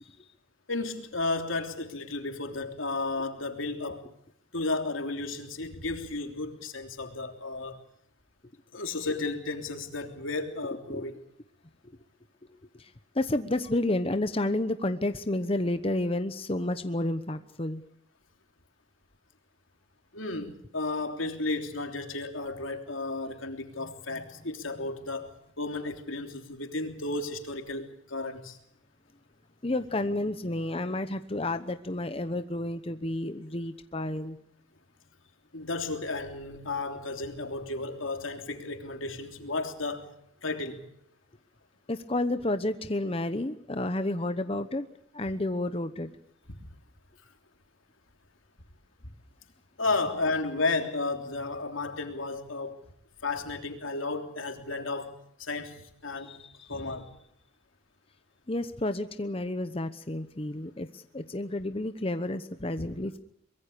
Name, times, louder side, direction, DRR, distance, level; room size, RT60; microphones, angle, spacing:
voice 1, 0.7-4.1 4.5-7.8 8.7-11.2 20.1-28.6 35.5-40.1 40.4-40.8 49.8-52.8 53.2-56.4 56.7-57.1 62.8-62.9, left 3 dB, 90° left, 3.2 m, -33 dB
voice 2, 12.7-17.8 29.6-34.4 41.9-44.9 45.1-46.1 56.2-56.8 58.5-63.2, left 1 dB, 30° left, 1.0 m, -31 dB
24.0 x 22.0 x 6.8 m
head